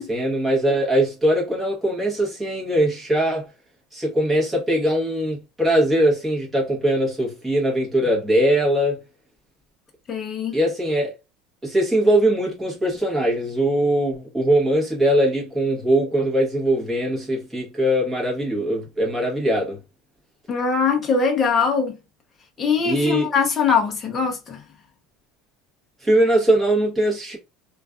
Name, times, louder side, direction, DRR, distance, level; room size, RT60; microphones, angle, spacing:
voice 1, 0.0-3.5 3.9-9.0 10.5-11.1 11.6-19.8 22.8-23.3 26.0-27.4, right 1 dB, 10° right, 1.0 m, -21 dB
voice 2, 10.1-10.6 20.5-22.0 22.6-24.6, left 5 dB, 20° left, 0.6 m, -21 dB
2.5 x 2.3 x 2.3 m
cardioid pair, 175°, 0 cm